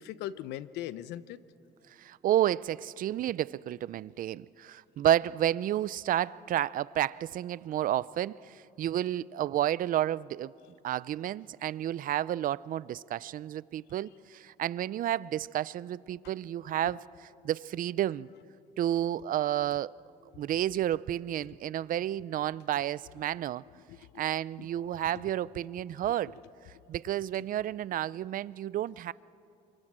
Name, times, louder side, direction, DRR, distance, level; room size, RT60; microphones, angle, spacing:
voice 1, 0.0-1.4 16.2-16.3 23.9-24.2 24.6-24.7 25.0-25.2, left 12 dB, 90° left, 0.8 m, -40 dB
voice 2, 2.0-10.5 10.8-17.0 17.4-18.3 18.8-19.9 20.4-23.6 24.2-26.3 26.9-29.1, right 12 dB, 55° right, 0.5 m, -31 dB
27.5 x 25.5 x 7.5 m
cardioid pair, 110°, 17 cm